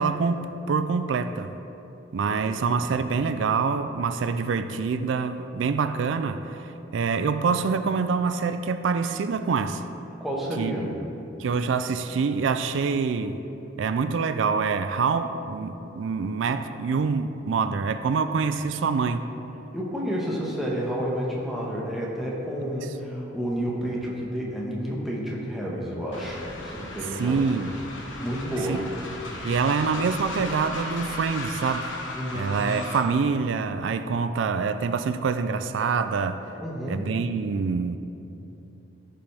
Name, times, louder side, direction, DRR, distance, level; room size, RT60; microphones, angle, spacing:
voice 1, 0.0-1.5 2.1-9.8 10.6-10.9 11.4-13.4 13.8-19.3 27.0-27.7 28.7-28.8 29.4-31.9 32.3-36.4 36.9-38.0, right 5 dB, 85° right, 10 dB, 0.4 m, -26 dB
voice 2, 2.4-2.9 10.2-10.9 19.7-27.4 28.2-28.8 32.1-32.5 36.6-37.1, equal, ahead, -5 dB, 1.3 m, -30 dB
Train, 26.1-33.2, left 2 dB, 90° left, 1.2 m, -36 dB
14.0 x 5.6 x 3.5 m, 3.0 s
head